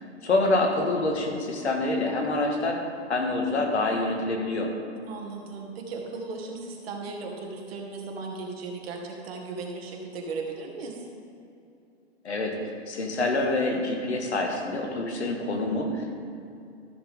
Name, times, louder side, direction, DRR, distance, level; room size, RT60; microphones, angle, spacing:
voice 1, 0.2-2.8 3.1-4.7 12.2-12.6 12.9-16.2, left 2 dB, 90° left, 2 dB, 1.8 m, -26 dB
voice 2, 5.1-11.0, right 3 dB, 65° right, 1 dB, 2.1 m, -36 dB
13.5 x 7.2 x 3.7 m, 2.6 s
hypercardioid pair, 120°, 33 cm